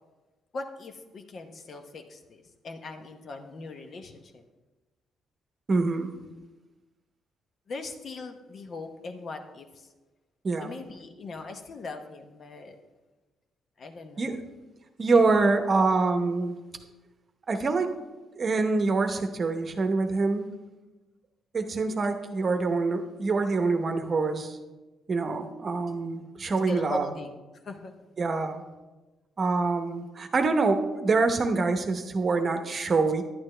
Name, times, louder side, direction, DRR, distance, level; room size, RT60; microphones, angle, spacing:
voice 1, 0.5-4.4 7.7-9.9 10.6-12.8 13.8-14.3 15.1-15.2 26.7-27.4 27.6-27.9, left 3 dB, 50° left, 6 dB, 0.8 m, -40 dB
voice 2, 5.7-6.1 10.4-10.7 14.2-14.4 15.0-16.6 17.5-17.9 18.4-20.4 21.5-24.6 25.1-27.1 28.2-28.6 29.4-33.2, right 3 dB, 40° right, 7 dB, 0.8 m, -25 dB
10.5 x 8.8 x 3.3 m, 1.2 s
cardioid pair, 90°, 0 cm